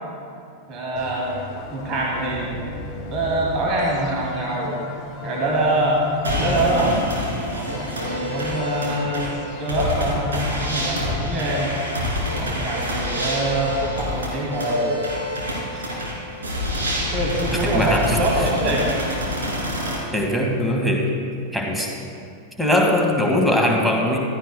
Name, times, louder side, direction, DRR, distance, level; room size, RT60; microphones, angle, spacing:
voice 1, 0.7-1.3 1.7-2.5 3.1-4.8 5.2-6.0 6.4-7.0 7.5-11.7 12.4-15.0 15.7-15.9 17.1-18.9, right 1 dB, 35° right, -3 dB, 2.3 m, -24 dB
sound 1, 1.0-12.0, left 3 dB, 35° left, 1.2 m, -35 dB
sound 2, 6.2-20.0, left 1 dB, 70° right, 2.6 m, -27 dB
voice 2, 17.6-18.2 20.1-21.1 21.5-21.9 22.6-24.2, left 1 dB, 5° right, 0 dB, 1.7 m, -20 dB
15.5 x 13.0 x 2.2 m, 2.4 s
figure-of-eight pair, 90°, 0 cm